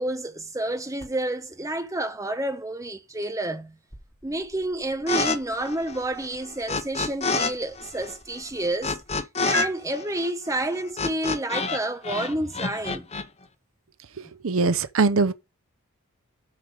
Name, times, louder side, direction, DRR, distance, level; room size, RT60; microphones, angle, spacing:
voice 1, 0.0-3.8 4.2-9.0 9.4-13.1, right 1 dB, 15° right, 1.1 m, -29 dB
sound 1, 1.0-9.2 9.5-9.7, left 1 dB, 15° left, 2.9 m, -40 dB
sound 2, 5.1-5.4 5.6-7.5 7.8-11.8 12.0-13.2, left 4 dB, 30° left, 0.9 m, -28 dB
voice 2, 14.4-15.3, right 4 dB, 65° right, 0.7 m, -21 dB
8.4 x 4.9 x 6.4 m
head